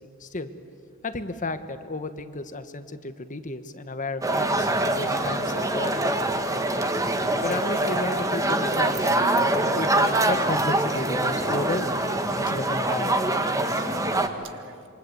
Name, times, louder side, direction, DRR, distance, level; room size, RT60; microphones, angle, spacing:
voice 1, 1.0-4.7 5.0-6.3 6.7-6.8 7.4-12.0 12.4-13.2, left 2 dB, 35° left, 10 dB, 1.3 m, -33 dB
sound 1, 4.2-14.3, right 1 dB, 15° right, 1.4 m, -24 dB
voice 2, 8.5-10.5 10.9-11.8 12.3-12.4 13.5-14.9, right 4 dB, 60° right, 9 dB, 1.7 m, -43 dB
27.5 x 24.5 x 8.0 m, 2.4 s
head